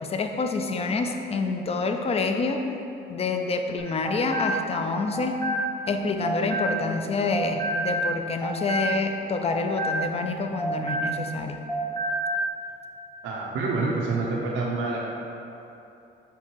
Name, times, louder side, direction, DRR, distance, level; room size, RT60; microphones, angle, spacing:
voice 1, 0.0-2.6 3.1-5.3 5.9-11.6, left 3 dB, 30° left, 5 dB, 0.4 m, -27 dB
sound 1, 3.8-7.0 7.3-11.4 11.7-12.5, right 1 dB, 15° left, 0.7 m, -29 dB
voice 2, 13.2-15.0, right 3 dB, 80° right, -3 dB, 0.6 m, -27 dB
4.6 x 3.6 x 2.9 m, 2.8 s
cardioid pair, 90°, 20 cm